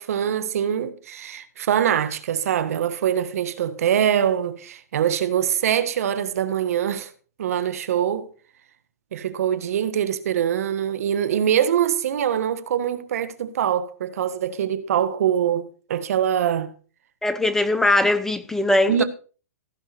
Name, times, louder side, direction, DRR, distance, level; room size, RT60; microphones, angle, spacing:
voice 1, 0.0-7.1 7.4-8.3 9.1-16.7 18.9-19.0, right 9 dB, 65° right, 1.5 m, -23 dB
voice 2, 17.2-19.0, left 2 dB, 5° left, 0.6 m, -20 dB
15.5 x 5.6 x 5.9 m
hypercardioid pair, 140°, 9 cm